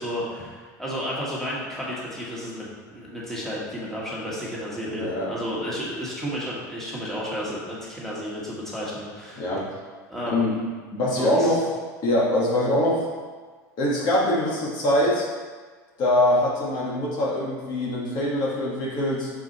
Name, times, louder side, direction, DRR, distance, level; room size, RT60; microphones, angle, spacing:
voice 1, 0.0-9.5 10.1-10.6 11.2-11.6, equal, 5° left, -7 dB, 1.9 m, -32 dB
voice 2, 5.0-5.3 9.4-9.7 10.3-10.5 10.9-11.7 12.0-13.1 13.8-15.3 16.0-19.3, left 1 dB, 50° left, -4 dB, 1.7 m, -23 dB
6.1 x 4.7 x 4.2 m, 1.5 s
supercardioid pair, 110°, 10 cm